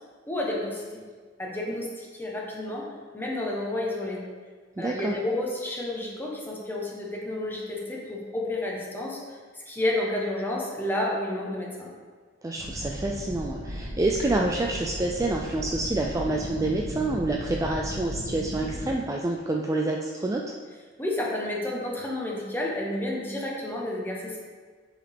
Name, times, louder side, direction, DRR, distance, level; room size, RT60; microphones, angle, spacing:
voice 1, 0.3-1.0 1.4-2.9 3.1-4.2 4.8-11.9 21.0-24.5, left 1 dB, 10° left, -3 dB, 1.1 m, -31 dB
voice 2, 4.8-5.1 12.4-20.6, right 2 dB, 15° right, -1 dB, 0.3 m, -27 dB
sound 1, 12.6-18.9, equal, 85° right, 1.7 m, -36 dB
7.2 x 4.8 x 3.5 m, 1.5 s
head